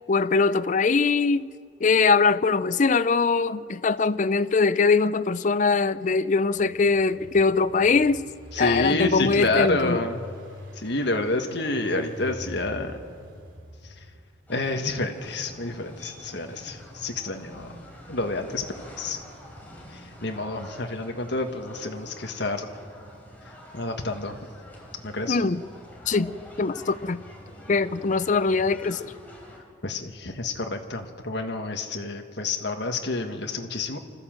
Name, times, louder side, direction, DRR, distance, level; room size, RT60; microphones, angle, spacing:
voice 1, 0.1-1.5 1.8-8.2 8.6-10.1 25.3-25.6 26.1-26.3 26.6-27.2 27.7-29.1, left 4 dB, 40° left, 0.5 m, -22 dB
Engine, 6.4-14.5, equal, 75° right, 3.0 m, -44 dB
voice 2, 8.5-10.2 10.8-13.0 14.5-17.8 18.1-18.6 19.0-19.2 20.2-22.7 23.7-24.3 25.0-25.4 29.8-34.0, left 2 dB, 60° left, 1.7 m, -28 dB
sound 1, 14.5-29.6, equal, 10° left, 3.6 m, -46 dB
26.0 x 14.0 x 7.6 m
head